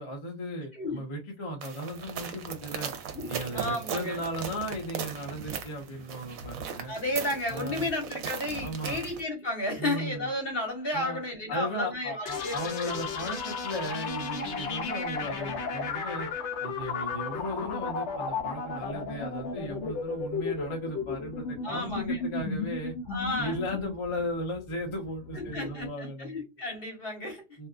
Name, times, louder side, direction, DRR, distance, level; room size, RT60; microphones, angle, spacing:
voice 1, 0.0-2.9 3.3-6.9 7.5-7.9 8.6-9.0 9.8-10.3 10.9-11.2 11.5-16.3 16.6-22.9 23.4-26.4 27.6-27.7, equal, 30° left, 0.6 m, -36 dB
sound 1, 1.6-9.2, right 7 dB, 90° right, 1.1 m, -38 dB
voice 2, 3.1-4.2 6.9-13.0 21.6-22.2 23.1-23.6 25.3-27.4, left 1 dB, 45° left, 1.2 m, -33 dB
sound 2, 12.3-25.9, left 4 dB, 60° left, 0.9 m, -34 dB
2.7 x 2.4 x 2.3 m
omnidirectional pair, 1.4 m